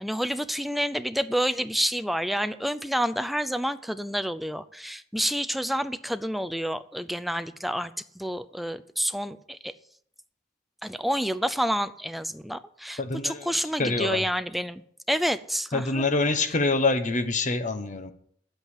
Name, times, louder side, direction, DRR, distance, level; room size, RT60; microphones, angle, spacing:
voice 1, 0.0-9.7 10.8-14.8 15.1-16.1, equal, ahead, 0.5 m, -29 dB
voice 2, 13.0-13.5 13.8-14.3 15.7-18.1, left 3 dB, 45° left, 1.1 m, -25 dB
9.1 x 8.0 x 8.4 m
head